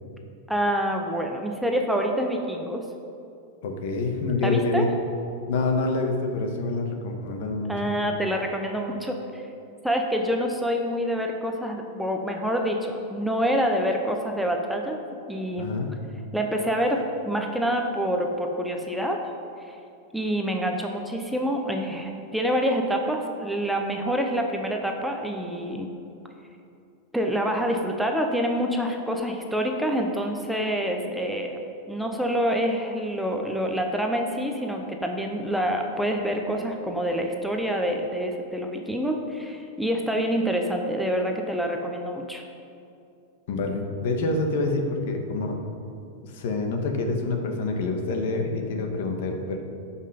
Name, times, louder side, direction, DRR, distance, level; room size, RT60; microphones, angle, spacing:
voice 1, 0.5-2.9 4.4-4.9 7.7-9.4 9.8-15.0 15.3-15.7 16.3-19.2 19.7-19.8 20.1-25.9 27.1-31.6 31.9-42.5, equal, ahead, 2 dB, 0.6 m, -27 dB
voice 2, 3.6-4.9 5.5-7.9 15.6-15.9 43.5-45.6 46.2-49.6, left 3 dB, 65° left, 3 dB, 1.4 m, -27 dB
13.5 x 5.7 x 5.1 m, 2.5 s
supercardioid pair, 160°, 0 cm